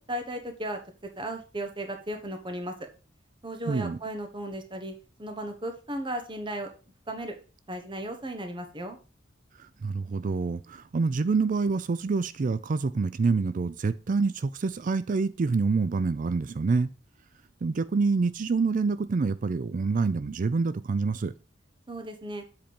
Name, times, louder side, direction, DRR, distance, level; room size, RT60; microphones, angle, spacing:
voice 1, 0.1-0.8 1.2-2.7 3.4-4.9 5.2-6.7 7.1-7.3 7.7-9.0 21.9-22.4, right 1 dB, 25° right, 1.3 m, -35 dB
voice 2, 3.7-4.0 9.6-16.9 17.6-21.3, right 4 dB, 45° right, 0.4 m, -27 dB
7.8 x 4.3 x 5.2 m
head